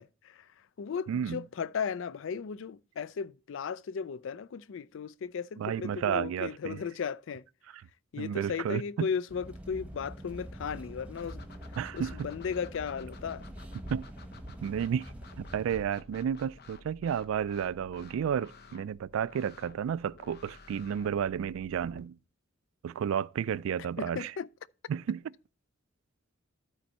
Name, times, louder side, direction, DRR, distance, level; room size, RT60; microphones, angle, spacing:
voice 1, 0.0-7.4 8.1-11.4 11.9-13.5 24.0-24.5, left 6 dB, 70° left, 0.4 m, -36 dB
voice 2, 1.1-1.4 5.6-6.8 8.2-9.1 11.8-12.1 13.9-14.1 14.6-15.1 15.4-22.2 22.8-24.3 24.9-25.2, right 8 dB, 85° right, 0.3 m, -32 dB
sound 1, 9.3-15.8, equal, 5° right, 1.0 m, -45 dB
sound 2, 11.2-22.0, left 3 dB, 55° left, 0.8 m, -53 dB
13.0 x 4.5 x 4.2 m
head